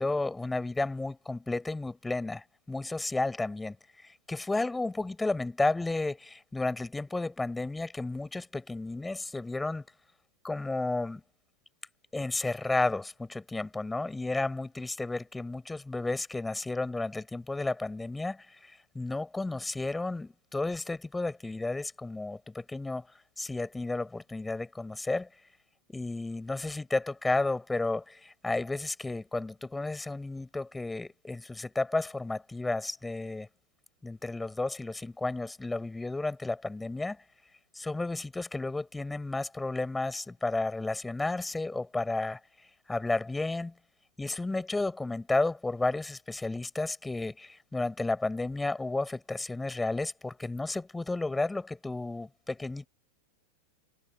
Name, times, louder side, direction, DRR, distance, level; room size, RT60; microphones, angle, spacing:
voice 1, 0.0-9.9 10.4-11.2 12.1-23.1 23.4-25.3 25.9-33.5 34.0-37.2 37.7-42.4 42.9-43.7 44.2-52.9, left 2 dB, 10° left, 7.9 m, -32 dB
figure-of-eight pair, 90°, 0 cm